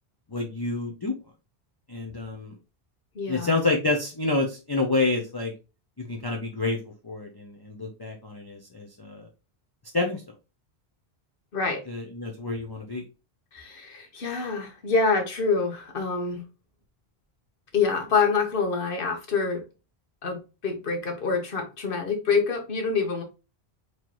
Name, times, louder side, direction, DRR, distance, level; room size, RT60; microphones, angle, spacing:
voice 1, 0.3-1.1 1.9-2.6 3.3-5.5 6.0-6.8 7.0-9.3 9.9-10.2 11.9-13.0, left 3 dB, 25° left, 0.6 m, -28 dB
voice 2, 3.1-3.6 11.5-11.8 13.5-16.4 17.7-19.6 20.2-23.2, left 4 dB, 60° left, 1.2 m, -26 dB
4.3 x 3.1 x 2.9 m
omnidirectional pair, 1.1 m